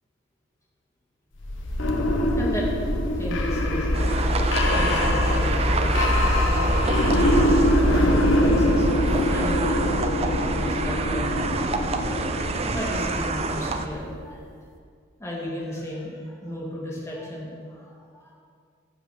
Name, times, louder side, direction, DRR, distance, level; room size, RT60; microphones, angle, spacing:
sound 1, 1.4-14.2, left 1 dB, 80° left, 1.0 m, -23 dB
voice 1, 2.4-2.7 3.2-4.4 4.7-6.1 6.4-7.6 8.4-11.6 12.4-14.6 15.2-18.3, left 1 dB, 15° left, -4 dB, 1.9 m, -34 dB
sound 2, 3.9-13.9, right 4 dB, 30° right, 0.5 m, -29 dB
14.5 x 5.9 x 4.9 m, 2.2 s
head